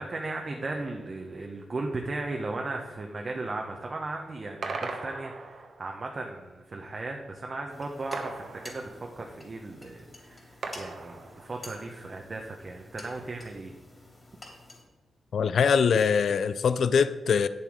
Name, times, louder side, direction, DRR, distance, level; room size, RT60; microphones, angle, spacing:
voice 1, 0.0-13.7, right 2 dB, 40° right, 1 dB, 1.0 m, -36 dB
sound 1, 4.6-6.0 8.1-9.3 10.6-11.8, right 4 dB, 65° right, 1.2 m, -38 dB
sound 2, 7.7-14.8, left 2 dB, 25° left, 3.4 m, -50 dB
voice 2, 15.3-17.5, left 6 dB, 70° left, 13 dB, 0.3 m, -23 dB
9.1 x 7.2 x 4.9 m, 1.2 s
cardioid pair, 75°, 0 cm